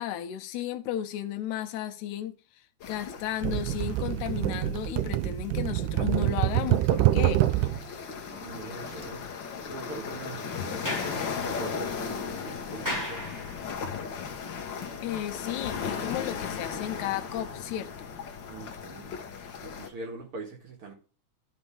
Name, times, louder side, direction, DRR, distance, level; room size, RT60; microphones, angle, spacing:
voice 1, 0.0-7.4 15.0-17.9, left 12 dB, 80° left, 2.0 m, -34 dB
sound 1, 2.8-19.9, left 6 dB, 60° left, 1.2 m, -37 dB
sound 2, 3.4-7.8 8.9-9.1, right 15 dB, 90° right, 2.0 m, -26 dB
voice 2, 8.3-9.3 9.7-13.3 18.5-19.1 19.4-20.9, right 3 dB, 55° right, 2.2 m, -42 dB
Sliding door, 10.6-13.9, left 1 dB, 10° right, 0.8 m, -38 dB
12.0 x 4.3 x 3.3 m
omnidirectional pair, 3.5 m